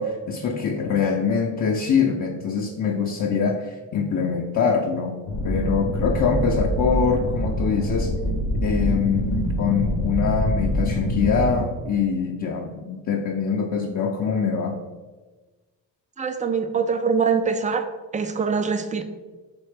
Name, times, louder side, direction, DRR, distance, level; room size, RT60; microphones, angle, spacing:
voice 1, 0.0-8.1 8.6-14.8, left 5 dB, 40° left, 1 dB, 0.5 m, -24 dB
sound 1, 5.3-11.6, left 1 dB, 85° left, 0.8 m, -25 dB
voice 2, 16.2-17.9 18.1-19.0, right 5 dB, 20° right, 8 dB, 0.3 m, -23 dB
4.4 x 3.1 x 3.3 m, 1.3 s
cardioid pair, 70°, 45 cm